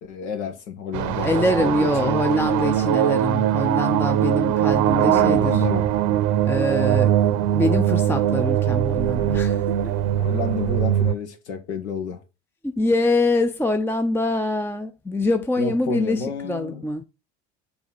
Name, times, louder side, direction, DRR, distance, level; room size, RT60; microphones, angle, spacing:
voice 1, 0.0-2.1 4.9-5.9 10.2-12.2 15.6-16.8, left 5 dB, 80° left, 1.6 m, -30 dB
sound 1, 0.9-11.1, right 11 dB, 60° right, 0.7 m, -21 dB
voice 2, 1.2-5.6 6.5-7.1 7.5-9.9 12.6-17.0, left 2 dB, 5° left, 0.5 m, -24 dB
6.9 x 4.2 x 4.1 m
hypercardioid pair, 80°, 34 cm